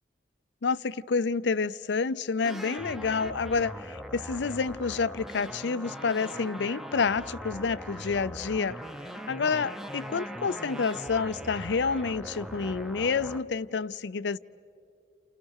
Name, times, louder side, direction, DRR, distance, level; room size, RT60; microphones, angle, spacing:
voice 1, 0.6-8.8 9.3-14.4, left 5 dB, 80° left, 0.6 m, -29 dB
sound 1, 2.4-13.4, equal, ahead, 0.8 m, -40 dB
30.0 x 29.5 x 6.5 m
head